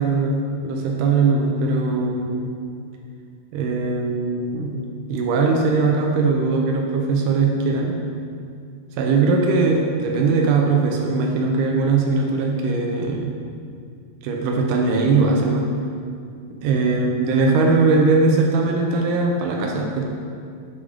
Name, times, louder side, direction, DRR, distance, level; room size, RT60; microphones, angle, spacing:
voice 1, 0.0-2.5 3.5-8.0 9.0-13.3 14.2-15.7 16.6-20.0, right 3 dB, 85° right, 1 dB, 1.8 m, -20 dB
6.8 x 3.5 x 4.9 m, 2.3 s
omnidirectional pair, 4.3 m